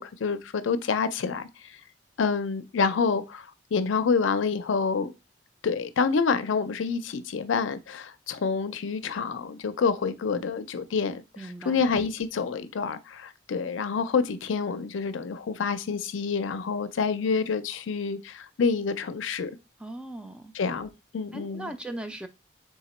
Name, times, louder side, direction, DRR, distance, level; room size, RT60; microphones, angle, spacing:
voice 1, 0.0-1.5 2.2-5.1 5.6-11.2 11.7-19.5 20.5-21.7, left 5 dB, 80° left, 0.4 m, -27 dB
voice 2, 11.4-11.8 19.8-20.5 21.3-22.3, right 1 dB, 5° right, 0.3 m, -38 dB
3.8 x 2.9 x 4.1 m
head